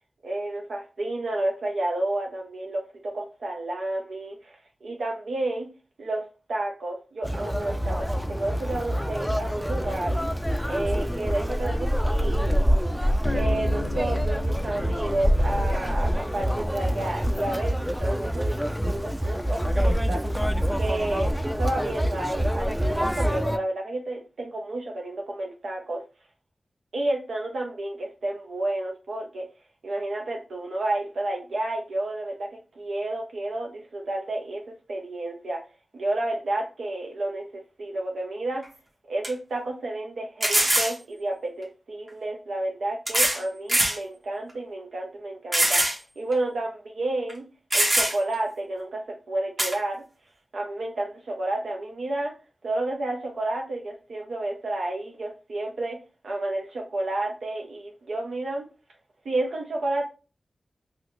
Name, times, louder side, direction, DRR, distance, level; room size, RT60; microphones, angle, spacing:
voice 1, 0.2-5.7 6.0-10.1 10.6-12.6 13.3-20.2 20.8-26.0 26.9-29.5 29.8-35.6 35.9-38.6 39.1-45.8 46.2-47.5 47.7-50.0 50.5-52.3 52.6-56.0 56.2-58.7 59.2-60.0, right 2 dB, 90° right, 0 dB, 0.6 m, -31 dB
Conversation, 7.2-23.6, equal, ahead, 0.3 m, -26 dB
Bass guitar, 13.2-16.7, left 4 dB, 65° left, 0.4 m, -38 dB
sound 1, 38.6-38.7 39.2-39.3 40.4-41.0 42.1-42.2 43.1-43.4 43.7-44.0 44.5-44.6 45.5-46.0 46.3-46.4 47.3-47.4 47.7-48.3 49.6-49.8, right 1 dB, 45° right, 1.2 m, -22 dB
3.0 x 2.8 x 3.0 m, 0.33 s
wide cardioid pair, 60°, 0 cm